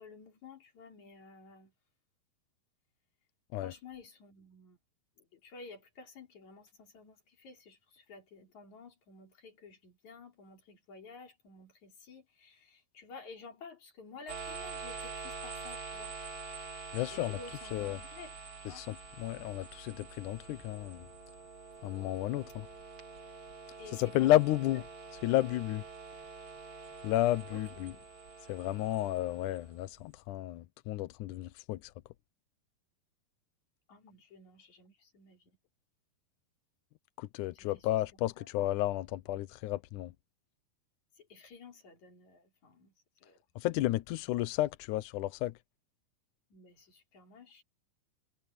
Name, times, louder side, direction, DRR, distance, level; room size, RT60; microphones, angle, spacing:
voice 1, 0.0-1.7 3.6-4.8 5.2-16.2 17.1-18.4 18.7-18.8 23.8-24.3 27.5-28.0 33.9-35.6 37.5-37.9 38.4-38.5 41.2-42.9 43.2-43.4 46.5-47.6, left 4 dB, 50° left, 5.5 m, -53 dB
sound 1, 14.3-30.0, right 4 dB, 35° right, 2.7 m, -46 dB
voice 2, 16.9-17.4 17.7-18.0 18.6-21.1 21.8-22.7 23.9-24.8 25.2-25.8 27.0-27.9 28.5-31.9 37.2-40.1 43.5-45.5, left 15 dB, 80° left, 1.8 m, -32 dB
omnidirectional pair, 4.4 m